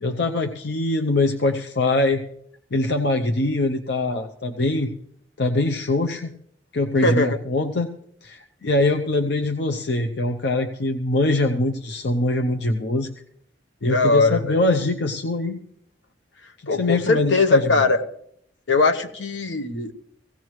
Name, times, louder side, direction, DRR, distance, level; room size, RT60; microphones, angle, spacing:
voice 1, 0.0-2.2 2.7-4.9 5.4-6.3 6.7-7.9 8.2-13.1 13.8-15.6 16.6-17.6, left 2 dB, 60° left, 5 dB, 0.7 m, -23 dB
voice 2, 7.0-7.4 13.8-14.6 16.7-18.0 18.7-19.9, left 3 dB, 75° left, 7 dB, 1.0 m, -20 dB
17.0 x 16.5 x 3.1 m, 0.69 s
head